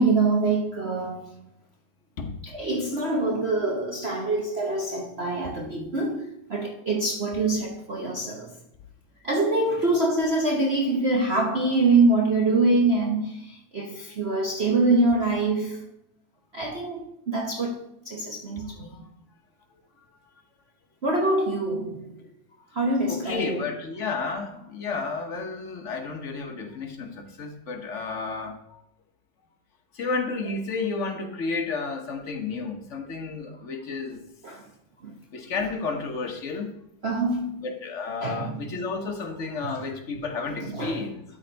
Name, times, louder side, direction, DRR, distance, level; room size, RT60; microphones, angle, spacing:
voice 1, 0.0-1.3 2.5-8.5 9.2-15.8 16.5-18.9 21.0-22.1 22.7-23.6 34.4-34.6 35.0-35.1 37.0-37.7 38.2-38.6 39.7-39.8 40.7-41.0, right 2 dB, 40° right, 1.0 m, -25 dB
voice 2, 18.6-19.1 23.1-28.8 29.9-34.2 35.3-36.7 37.6-41.2, left 4 dB, 45° left, 1.3 m, -32 dB
13.0 x 4.4 x 4.0 m
omnidirectional pair, 2.1 m